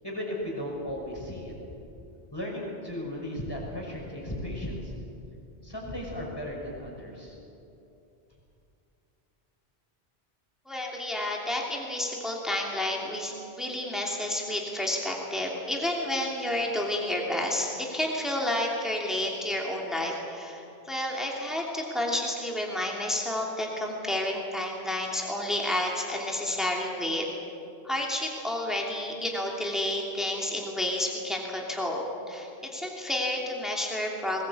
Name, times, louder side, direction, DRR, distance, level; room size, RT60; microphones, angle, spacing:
voice 1, 0.0-1.5 2.3-4.9 5.6-7.3, left 1 dB, 20° left, -2 dB, 5.8 m, -35 dB
voice 2, 10.7-27.2 27.8-34.5, left 1 dB, ahead, -1 dB, 2.8 m, -30 dB
21.0 x 20.0 x 8.4 m, 2.8 s
omnidirectional pair, 1.1 m